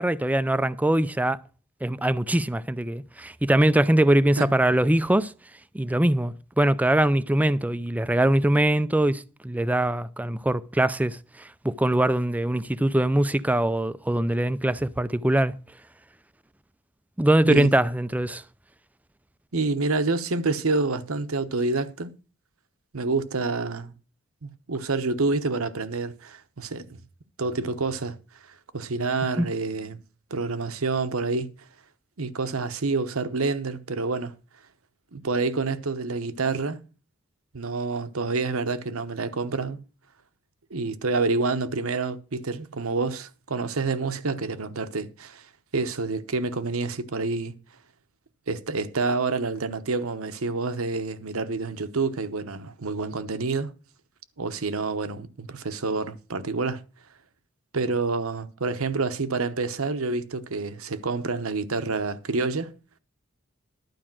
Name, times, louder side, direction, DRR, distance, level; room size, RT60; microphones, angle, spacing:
voice 1, 0.0-1.4 1.8-5.3 5.7-15.6 17.2-18.4 29.4-29.5, right 1 dB, 5° right, 0.4 m, -22 dB
voice 2, 19.5-22.1 22.9-23.9 24.4-27.0 27.4-28.2 28.7-30.0 30.3-31.5 32.2-34.3 35.1-36.8 37.5-39.8 40.7-45.5 45.7-47.5 48.5-53.7 54.4-56.8 57.7-62.7, right 3 dB, 75° right, 1.0 m, -28 dB
12.0 x 4.9 x 7.5 m
head